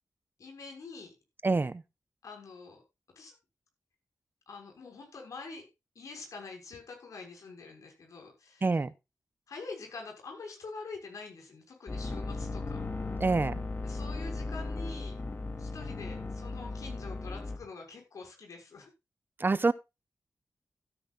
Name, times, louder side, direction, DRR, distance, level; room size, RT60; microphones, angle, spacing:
voice 1, 0.4-1.1 2.2-2.8 3.1-3.4 4.5-5.7 5.9-8.6 9.5-12.9 13.8-15.2 15.6-18.9, left 4 dB, 90° left, 6.3 m, -45 dB
voice 2, 1.4-1.8 8.6-8.9 13.2-13.6 19.4-19.7, right 3 dB, 40° right, 0.9 m, -26 dB
sound 1, 11.9-17.6, left 3 dB, 40° left, 3.2 m, -36 dB
17.0 x 9.8 x 2.6 m
cardioid pair, 65°, 5 cm